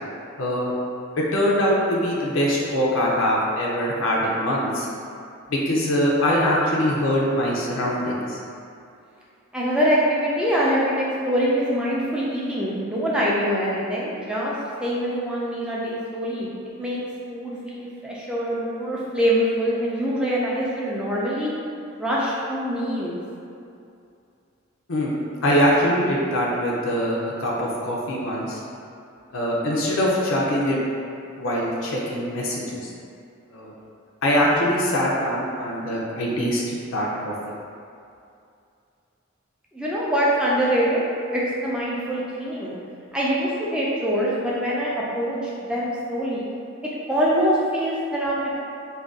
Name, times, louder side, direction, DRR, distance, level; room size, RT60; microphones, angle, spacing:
voice 1, 0.4-0.7 1.2-4.9 5.5-8.4 24.9-25.1 25.4-28.6 29.3-30.8 31.4-32.8 33.5-33.7 34.2-37.3, equal, 75° left, -4 dB, 0.5 m, -23 dB
voice 2, 9.5-14.5 14.8-16.5 16.8-17.0 17.3-21.5 22.0-23.2 39.7-42.7 43.1-46.5 47.1-48.6, equal, 5° right, -7 dB, 0.4 m, -24 dB
2.5 x 2.2 x 3.5 m, 2.5 s
head